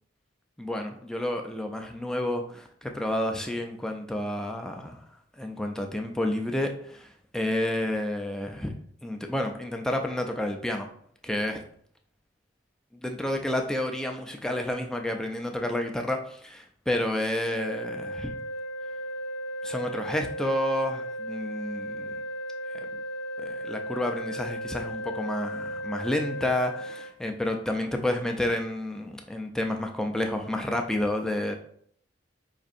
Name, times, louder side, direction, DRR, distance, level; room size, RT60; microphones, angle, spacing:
voice 1, 0.6-5.0 5.3-8.7 9.0-10.9 11.2-11.6 12.9-18.3 19.6-22.2 22.7-22.9 23.4-31.6, left 1 dB, 5° left, 3 dB, 0.3 m, -30 dB
sound 1, 17.5-27.1, equal, 75° left, 0.4 m, -35 dB
4.9 x 2.6 x 2.5 m, 0.64 s
head